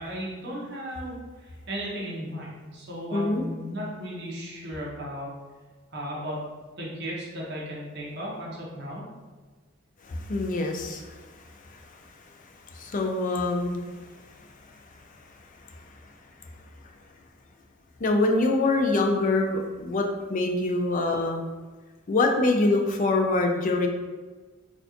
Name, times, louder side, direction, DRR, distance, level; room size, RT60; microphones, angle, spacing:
voice 1, 0.0-5.3 5.9-6.4 6.8-9.0, equal, 55° right, -4 dB, 1.0 m, -35 dB
voice 2, 3.1-3.4 10.0-11.2 12.7-13.8 18.0-21.4 22.1-23.9, left 2 dB, 40° left, 3 dB, 0.4 m, -24 dB
4.1 x 2.4 x 2.9 m, 1.3 s
head